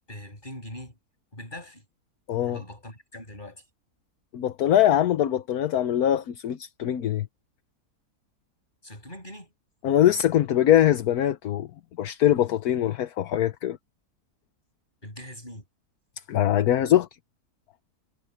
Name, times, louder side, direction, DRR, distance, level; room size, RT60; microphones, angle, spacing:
voice 1, 0.1-0.9 1.3-1.8 2.5-3.6 8.8-9.5 15.0-15.6, left 1 dB, 30° left, 7.7 m, -41 dB
voice 2, 2.3-2.6 4.3-7.3 9.8-11.7 12.0-13.8 16.3-17.1, left 11 dB, 70° left, 1.3 m, -22 dB
omnidirectional pair, 1.7 m